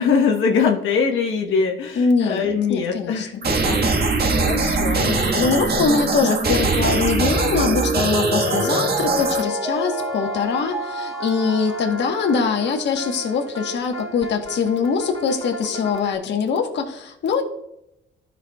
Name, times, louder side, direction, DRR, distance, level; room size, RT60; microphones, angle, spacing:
voice 1, 0.0-5.0, left 5 dB, 80° left, 2 dB, 1.3 m, -22 dB
voice 2, 2.0-3.4 5.0-17.4, left 5 dB, 65° left, 3 dB, 1.3 m, -23 dB
sound 1, 3.4-9.4, right 3 dB, 55° right, 1.6 m, -21 dB
Mallet percussion, 7.6-13.1 13.5-13.6, equal, 10° right, 0.9 m, -29 dB
sound 2, 8.4-16.1, right 1 dB, 25° left, 2.5 m, -34 dB
13.5 x 5.8 x 2.3 m, 0.80 s
cardioid pair, 90°, 20 cm